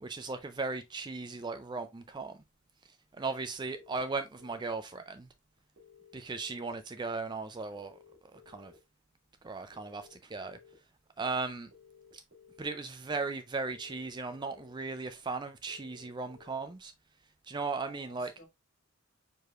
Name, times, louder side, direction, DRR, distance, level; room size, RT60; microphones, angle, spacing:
voice 1, 0.0-2.4 3.2-5.3 6.1-8.0 8.3-8.7 9.4-10.6 11.2-11.7 12.1-12.2 12.6-16.9 17.4-18.3, right 3 dB, 20° right, 0.3 m, -37 dB
sound 1, 3.8-4.8 5.8-6.8 7.7-8.8 9.7-10.7 11.7-12.7 13.7-14.7 15.7-16.7, left 6 dB, 55° right, 1.7 m, -58 dB
voice 2, 17.5-18.5, left 1 dB, 50° left, 1.7 m, -56 dB
4.8 x 4.7 x 2.3 m
head